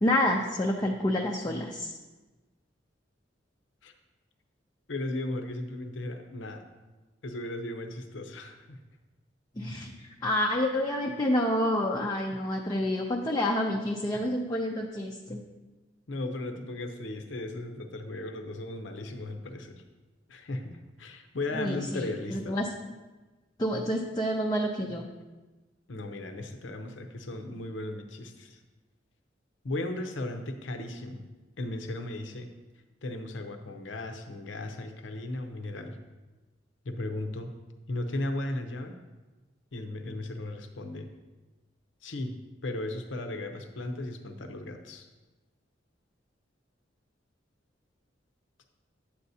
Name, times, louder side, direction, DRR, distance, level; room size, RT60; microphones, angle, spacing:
voice 1, 0.0-1.9 9.6-15.4 21.5-22.7 23.6-25.0, left 1 dB, 20° left, -1 dB, 0.5 m, -28 dB
voice 2, 4.9-6.6 7.2-8.8 14.1-14.2 16.1-19.8 20.3-22.6 25.9-28.6 29.6-31.3 31.6-32.5 33.0-36.0 36.8-37.5 37.9-39.0 39.7-41.1 42.0-42.3 42.6-45.1, left 2 dB, 85° left, 6 dB, 0.7 m, -36 dB
8.5 x 8.1 x 2.7 m, 1.2 s
head